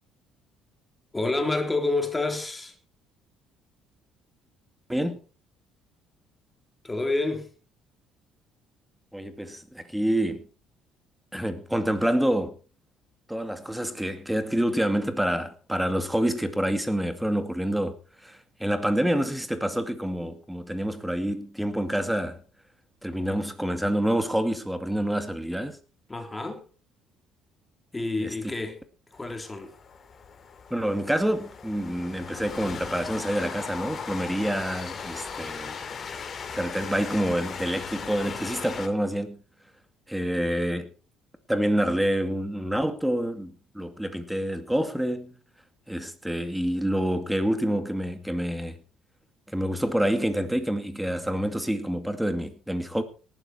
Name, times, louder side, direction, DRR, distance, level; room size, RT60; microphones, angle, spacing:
voice 1, 1.1-2.7 6.8-7.5 26.1-26.6 27.9-28.8 29.1-29.7, left 2 dB, 15° left, 3.3 m, -28 dB
voice 2, 9.1-10.4 11.3-12.5 13.3-18.0 18.2-22.4 23.0-25.8 28.2-28.3 30.7-35.8 36.5-39.4 40.1-40.9 41.5-45.3 45.9-48.8 49.5-53.0, equal, 5° right, 2.3 m, -27 dB
Train, 29.1-38.9, left 6 dB, 35° left, 2.8 m, -38 dB
18.0 x 12.5 x 4.4 m
cardioid pair, 120°, 0 cm